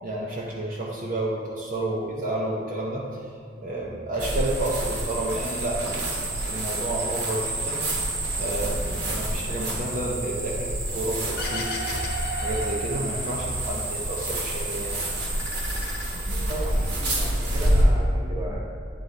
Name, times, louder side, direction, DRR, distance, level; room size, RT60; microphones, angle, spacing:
voice 1, 0.0-3.3 3.6-8.1 8.4-11.7 12.4-15.0 16.4-16.5, right 1 dB, 45° right, -5 dB, 0.8 m, -30 dB
sound 1, 4.2-17.8, right 1 dB, 65° right, 1.3 m, -28 dB
sound 2, 11.4-13.7 14.1-14.9 15.2-16.7, left 1 dB, 60° left, 1.1 m, -35 dB
voice 2, 16.3-18.6, right 1 dB, 20° right, -5 dB, 1.5 m, -35 dB
9.2 x 3.8 x 4.0 m, 2.5 s
head